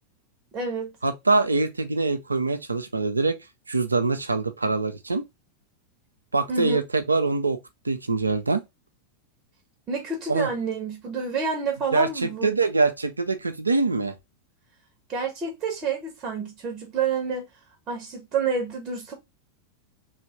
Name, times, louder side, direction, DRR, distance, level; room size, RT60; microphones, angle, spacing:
voice 1, 0.5-0.9 6.5-6.8 9.9-12.6 15.1-17.4 17.9-19.1, right 5 dB, 25° right, 1.1 m, -28 dB
voice 2, 1.0-3.4 3.7-5.2 6.3-7.6 7.8-8.6 10.3-10.5 11.9-14.2, right 3 dB, 80° right, 0.5 m, -24 dB
3.4 x 2.3 x 3.1 m
figure-of-eight pair, 90°, 0 cm